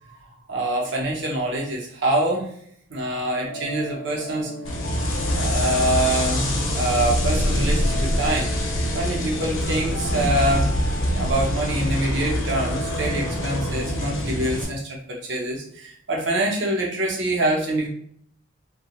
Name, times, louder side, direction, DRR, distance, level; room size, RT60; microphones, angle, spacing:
voice 1, 0.5-2.5 2.9-4.5 5.3-8.5 8.9-10.7 11.1-17.9, right 1 dB, 60° right, -2 dB, 0.7 m, -25 dB
sound 1, 3.4-14.3, left 2 dB, 60° left, 0.4 m, -36 dB
sound 2, 4.6-14.6, equal, 80° left, 0.7 m, -25 dB
2.7 x 2.3 x 2.9 m, 0.65 s
head